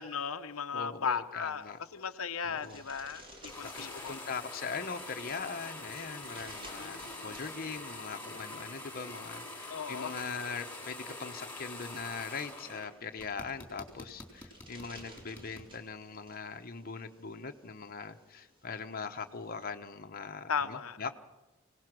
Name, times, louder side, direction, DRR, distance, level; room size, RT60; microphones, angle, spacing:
voice 1, 0.0-4.2 6.8-7.3 9.7-10.1 20.5-21.0, left 6 dB, 90° left, 8 dB, 0.8 m, -36 dB
voice 2, 0.7-1.8 2.4-2.8 3.6-21.2, left 5 dB, 45° left, 5 dB, 1.0 m, -41 dB
sound 1, 1.5-19.6, equal, 25° right, 3.5 m, -57 dB
sound 2, 3.5-12.9 13.2-15.7, left 2 dB, 10° left, 4.0 m, -45 dB
24.5 x 18.0 x 6.2 m, 1.0 s
head